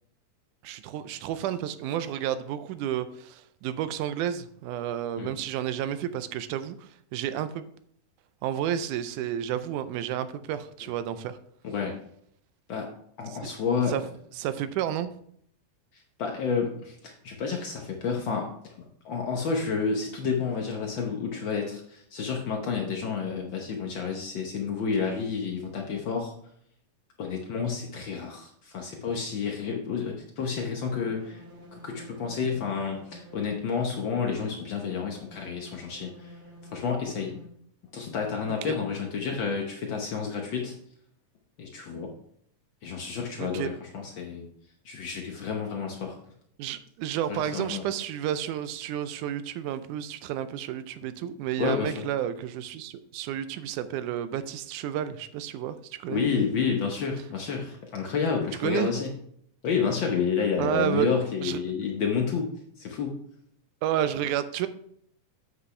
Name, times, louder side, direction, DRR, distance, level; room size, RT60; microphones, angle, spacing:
voice 1, 0.6-7.7 8.4-11.4 13.3-13.4 13.9-14.0 14.4-15.1 38.6-38.7 43.4-43.7 46.6-56.2 58.6-58.9 60.6-61.1 61.4-61.6 63.8-64.7, right 10 dB, 90° right, 12 dB, 2.1 m, -31 dB
voice 2, 13.2-14.0 15.9-26.3 27.2-31.4 31.7-36.4 36.7-37.3 37.9-40.7 41.6-42.1 42.8-44.5 44.8-46.2 47.3-47.8 51.6-52.1 56.1-59.1 59.6-63.2, left 6 dB, 85° left, 1 dB, 1.0 m, -30 dB
sound 1, 30.8-37.5, equal, 60° right, 3.2 m, -50 dB
8.1 x 7.8 x 3.2 m, 0.68 s
omnidirectional pair, 3.5 m